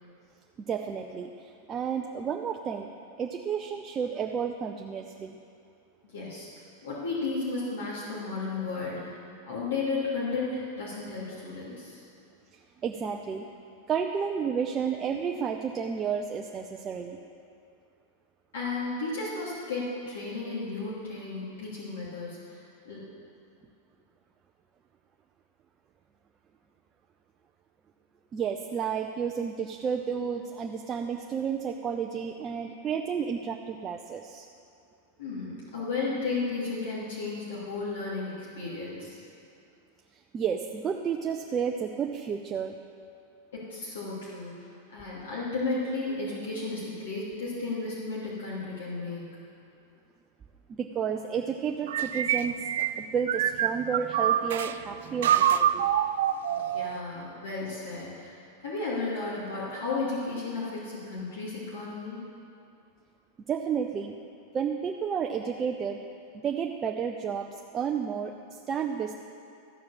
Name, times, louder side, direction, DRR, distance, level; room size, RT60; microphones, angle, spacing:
voice 1, 0.6-2.9 3.2-5.4 12.5-13.5 13.9-17.2 28.3-34.5 40.3-42.8 50.8-55.9 63.5-64.1 64.5-66.0 66.4-69.1, right 7 dB, 30° right, 2 dB, 0.6 m, -31 dB
voice 2, 6.1-6.5 6.8-9.1 9.5-12.0 18.5-22.6 22.8-23.1 35.2-39.2 43.5-49.4 56.7-62.2, left 3 dB, 85° left, -7 dB, 2.7 m, -34 dB
sound 1, 51.9-54.7 55.2-57.0, right 10 dB, 75° right, 0.4 m, -26 dB
14.0 x 4.8 x 7.2 m, 2.6 s
hypercardioid pair, 110°, 0 cm